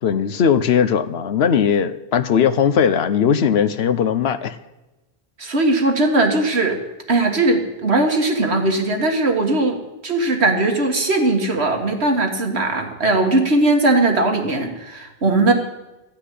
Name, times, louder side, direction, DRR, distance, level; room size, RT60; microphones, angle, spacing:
voice 1, 0.0-4.6, left 7 dB, 75° left, 12 dB, 1.0 m, -18 dB
voice 2, 5.4-6.8 7.1-9.8 10.0-15.5, right 2 dB, 85° right, 3 dB, 2.0 m, -19 dB
14.5 x 5.9 x 10.0 m, 1.1 s
omnidirectional pair, 1.1 m